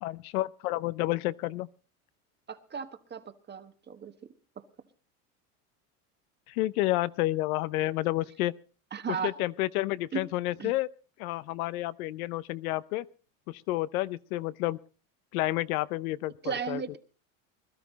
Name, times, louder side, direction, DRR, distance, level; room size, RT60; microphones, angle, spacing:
voice 1, 0.0-1.7 6.5-8.5 9.1-10.9 11.2-13.1 13.5-14.8 15.3-16.8, left 17 dB, 80° left, 0.7 m, -30 dB
voice 2, 2.5-4.1 8.9-9.3 10.1-10.3 10.6-10.7 16.4-17.0, right 7 dB, 25° right, 1.2 m, -35 dB
21.0 x 12.5 x 4.1 m
supercardioid pair, 100°, 43 cm